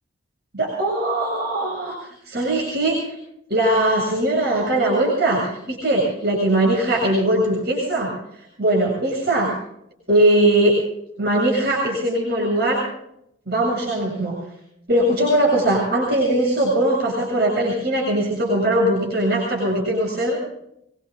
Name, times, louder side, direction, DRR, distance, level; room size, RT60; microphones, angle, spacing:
voice 1, 0.5-2.0 2.3-3.1 3.5-8.1 8.6-9.5 10.1-10.8 11.2-12.8 13.5-14.4 14.9-20.4, right 1 dB, 55° right, -4 dB, 7.4 m, -20 dB
25.5 x 23.5 x 2.4 m, 0.74 s
head